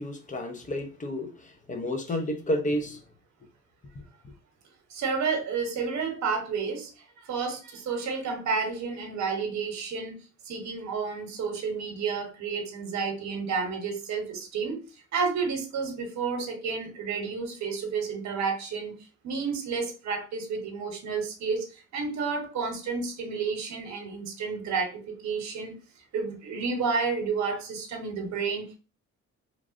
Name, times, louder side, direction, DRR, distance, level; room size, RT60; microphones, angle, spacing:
voice 1, 0.0-3.0, left 1 dB, 25° left, 0.6 m, -31 dB
voice 2, 4.9-10.2 10.4-14.8 15.1-19.0 19.2-25.7 26.1-28.8, right 5 dB, 65° right, 1.0 m, -31 dB
3.1 x 2.4 x 2.4 m
cardioid pair, 90°, 30 cm